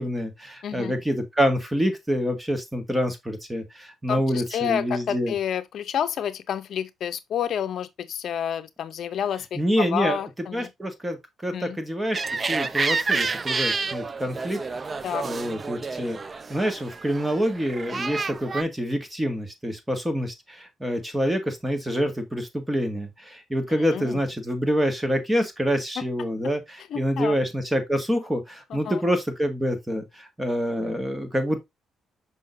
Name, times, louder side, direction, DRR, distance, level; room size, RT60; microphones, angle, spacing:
voice 1, 0.0-5.3 9.6-10.2 10.5-12.2 12.5-14.6 14.9-31.6, equal, 10° right, 1.8 m, -26 dB
voice 2, 0.6-0.9 4.1-4.2 4.5-10.7 11.5-11.8 15.0-15.3 23.9-24.2 26.9-27.3 28.7-29.0, left 9 dB, 65° left, 0.6 m, -29 dB
sound 1, 12.1-18.6, right 4 dB, 35° right, 0.5 m, -29 dB
6.4 x 5.6 x 2.6 m
cardioid pair, 90°, 0 cm